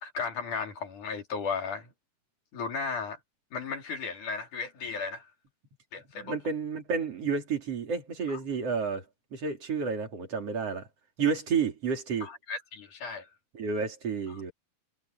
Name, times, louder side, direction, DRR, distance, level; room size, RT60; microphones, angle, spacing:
voice 1, 0.0-1.9 2.5-3.2 3.5-5.3 5.9-6.4 8.3-8.4 12.2-13.3 14.3-14.4, left 5 dB, 55° left, 5.4 m, -35 dB
voice 2, 6.1-9.0 9.3-10.9 11.2-12.3 13.5-14.5, right 5 dB, 40° right, 4.5 m, -30 dB
omnidirectional pair, 4.2 m